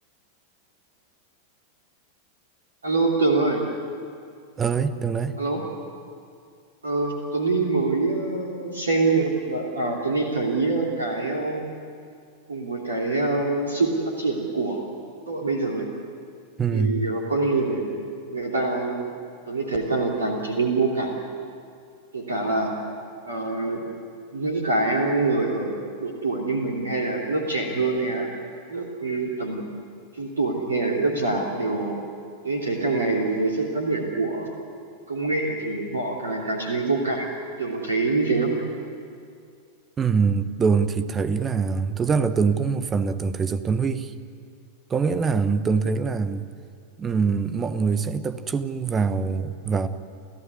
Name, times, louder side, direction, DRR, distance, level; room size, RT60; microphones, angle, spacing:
voice 1, 2.8-3.6 5.4-5.6 6.8-11.6 12.5-14.8 15.3-15.9 16.7-18.0 18.3-19.1 19.5-21.1 22.1-22.7 23.2-23.8 24.3-28.4 28.7-29.6 30.1-32.0 32.4-34.5 35.1-37.3 37.6-38.5, right 3 dB, 70° right, 0 dB, 3.0 m, -25 dB
voice 2, 4.6-5.4 16.6-16.9 40.0-44.1 44.9-46.5 47.0-49.9, right 5 dB, 20° right, 12 dB, 1.1 m, -24 dB
29.5 x 15.0 x 9.8 m, 2.3 s
figure-of-eight pair, 90°, 0 cm